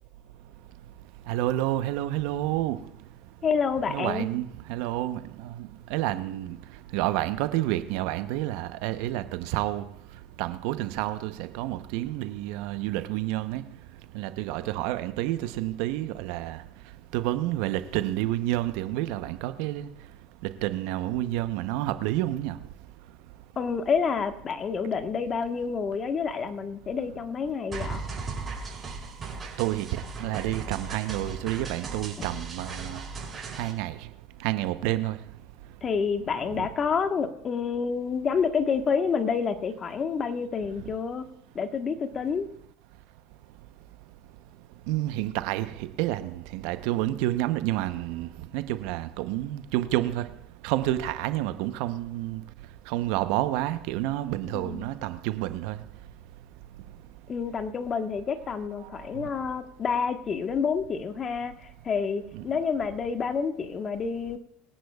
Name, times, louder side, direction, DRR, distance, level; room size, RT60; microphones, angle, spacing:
voice 1, 1.3-2.8 3.9-6.6 6.9-9.8 10.4-13.6 14.1-16.6 17.1-19.9 20.6-22.6 29.6-33.0 33.6-33.9 34.4-35.2 36.5-36.7 44.9-50.3 50.6-52.4 52.9-55.8 59.1-59.3 62.3-62.4, right 15 dB, 70° right, 0.8 m, -29 dB
voice 2, 3.4-4.3 23.6-28.0 32.2-32.3 35.8-41.3 41.5-42.5 54.5-54.9 57.3-61.5 61.8-64.4, left 6 dB, 35° left, 1.3 m, -28 dB
sound 1, 27.7-33.7, right 4 dB, 30° right, 5.5 m, -37 dB
23.5 x 10.5 x 2.4 m
hypercardioid pair, 85°, 0 cm